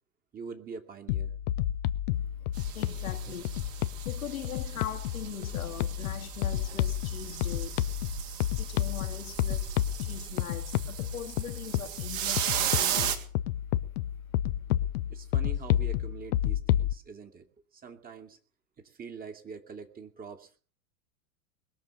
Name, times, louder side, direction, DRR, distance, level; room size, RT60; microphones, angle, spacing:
voice 1, 0.3-1.3 15.1-17.5 17.7-18.4 18.8-20.6, right 5 dB, 20° right, 2.5 m, -44 dB
sound 1, 1.1-16.9, left 12 dB, 45° left, 0.9 m, -31 dB
voice 2, 2.2-7.9 8.6-13.2, left 9 dB, 65° left, 1.9 m, -42 dB
sound 2, 2.5-13.2, right 10 dB, 40° right, 2.9 m, -36 dB
21.5 x 7.2 x 8.4 m
figure-of-eight pair, 95°, 44 cm